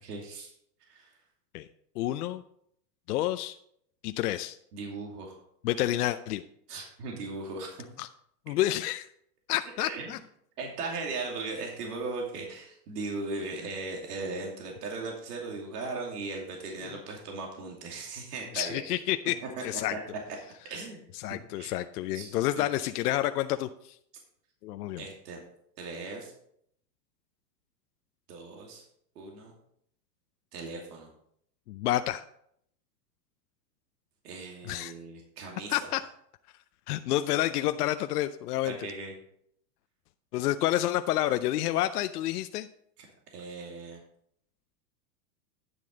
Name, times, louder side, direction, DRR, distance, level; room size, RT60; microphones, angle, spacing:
voice 1, 0.0-0.5 0.9-1.1 4.7-5.4 6.7-7.8 9.8-10.1 10.6-18.8 19.4-19.5 19.9-20.0 20.7-21.0 21.3-21.7 22.1-22.6 25.0-25.4 25.8-26.3 28.3-28.8 29.1-29.5 30.5-31.1 34.2-35.9 38.6-39.1 43.3-44.0, right 3 dB, 70° right, 0 dB, 2.7 m, -38 dB
voice 2, 2.0-2.4 3.1-3.6 4.0-4.6 5.6-6.4 8.0-8.1 8.5-9.1 9.5-10.2 16.8-16.9 18.5-19.4 19.6-19.9 21.2-24.0 24.6-25.0 31.7-32.2 34.6-34.9 35.7-36.0 36.9-38.8 40.3-42.7, left 14 dB, 70° left, 10 dB, 0.6 m, -29 dB
9.8 x 7.3 x 3.9 m, 0.69 s
hypercardioid pair, 140°, 48 cm